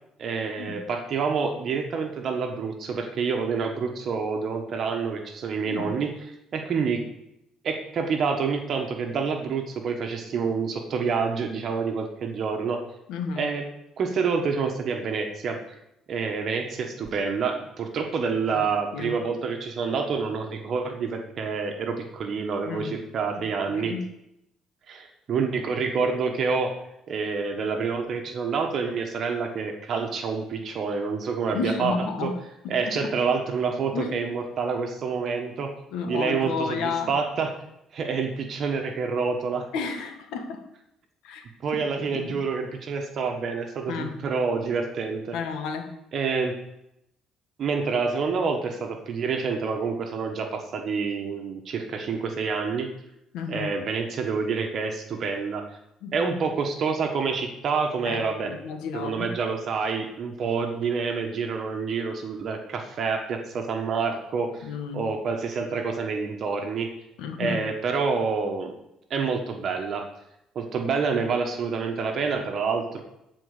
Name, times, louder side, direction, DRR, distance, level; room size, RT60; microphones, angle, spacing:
voice 1, 0.2-6.1 6.5-7.0 7.6-12.8 13.4-13.6 14.0-15.6 16.1-23.9 24.9-26.7 27.1-32.3 32.7-35.7 36.1-37.5 37.9-39.7 41.6-45.3 46.1-46.6 47.6-52.9 53.5-55.6 56.1-58.5 58.9-66.9 67.4-68.7 69.1-70.1 70.5-73.0, right 5 dB, 50° right, 3 dB, 1.3 m, -27 dB
voice 2, 5.6-6.0 13.1-13.5 18.5-18.7 18.9-19.1 22.6-23.0 23.4-24.1 31.5-32.3 32.6-33.1 33.9-34.1 35.9-37.1 39.7-40.6 41.2-41.5 42.1-42.4 43.9-44.2 45.3-45.9 53.3-53.7 56.0-56.1 58.0-59.3 64.6-65.1 67.2-67.6, left 5 dB, 85° left, 5 dB, 1.5 m, -32 dB
12.0 x 4.5 x 6.7 m, 0.83 s
cardioid pair, 110°, 0 cm